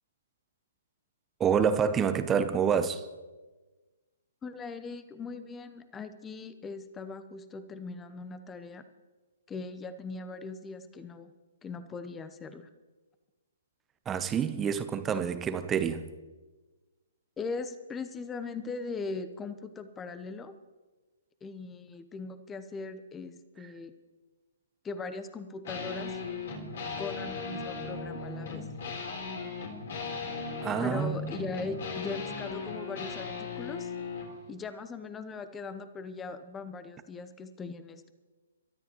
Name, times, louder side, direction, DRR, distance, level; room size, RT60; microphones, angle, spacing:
voice 1, 1.4-3.1 14.1-16.1 30.6-31.3, right 7 dB, 15° right, 0.7 m, -27 dB
voice 2, 4.4-8.9 9.5-11.3 11.6-12.7 17.4-20.5 21.4-23.9 24.8-26.2 27.0-28.7 30.8-33.9 34.5-38.1, left 4 dB, 15° left, 0.9 m, -40 dB
sound 1, 25.6-34.3, left 4 dB, 55° left, 3.8 m, -37 dB
27.5 x 13.0 x 3.1 m
figure-of-eight pair, 130°, 0 cm